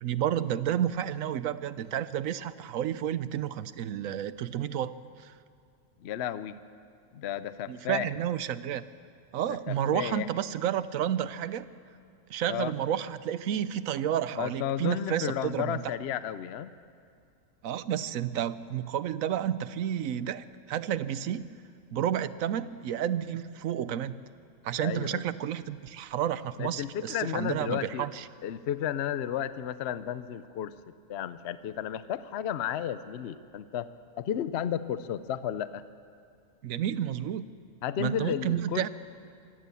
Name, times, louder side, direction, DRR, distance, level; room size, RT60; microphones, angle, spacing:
voice 1, 0.0-5.3 7.7-8.8 9.3-11.7 12.3-15.8 17.6-21.5 21.9-24.2 24.6-28.3 36.6-37.4 38.0-38.9, right 10 dB, 80° right, 15 dB, 1.1 m, -31 dB
voice 2, 6.0-6.6 7.1-8.1 9.5-10.3 12.5-12.7 14.4-16.7 24.8-25.2 26.6-28.1 28.4-30.7 31.1-33.9 34.2-35.8 37.8-38.9, left 10 dB, 60° left, 14 dB, 0.8 m, -33 dB
24.0 x 16.5 x 7.0 m, 2.4 s
omnidirectional pair, 1.4 m